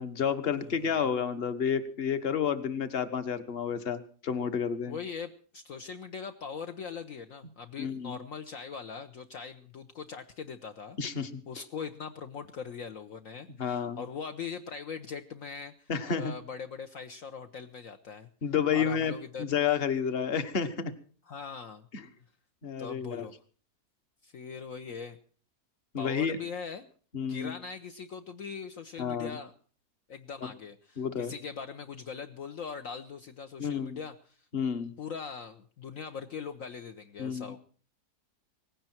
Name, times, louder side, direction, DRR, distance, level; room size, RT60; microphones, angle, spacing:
voice 1, 0.0-5.0 7.8-8.2 11.0-11.4 13.6-14.0 15.9-16.3 18.4-19.1 19.4-20.9 21.9-22.0 22.6-23.2 25.9-26.4 27.1-27.5 29.0-29.3 31.0-31.3 33.6-34.0 34.5-34.9 37.2-37.5, left 7 dB, 40° left, 11 dB, 1.5 m, -30 dB
voice 2, 0.6-1.0 4.9-11.0 11.5-18.3 18.7-19.4 21.3-21.9 22.8-23.4 24.2-25.2 26.0-26.9 27.3-29.5 30.1-34.5 35.0-37.6, left 6 dB, 60° left, 7 dB, 1.3 m, -41 dB
19.0 x 16.5 x 4.4 m, 0.43 s
omnidirectional pair, 1.7 m